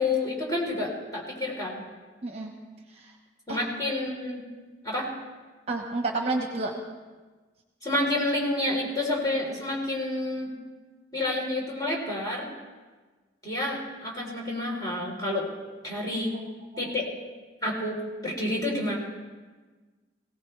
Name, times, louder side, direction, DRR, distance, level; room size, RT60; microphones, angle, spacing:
voice 1, 0.0-1.9 3.5-4.4 4.8-5.1 7.8-10.5 11.1-12.5 13.4-15.5 15.8-16.3 16.8-17.1 17.6-18.9, left 2 dB, 20° left, -3 dB, 3.6 m, -29 dB
voice 2, 2.2-2.5 2.9-3.1 3.5-3.6 5.7-6.7 16.7-16.9, right 3 dB, 35° right, 2 dB, 1.2 m, -30 dB
20.5 x 17.5 x 3.3 m, 1.3 s
head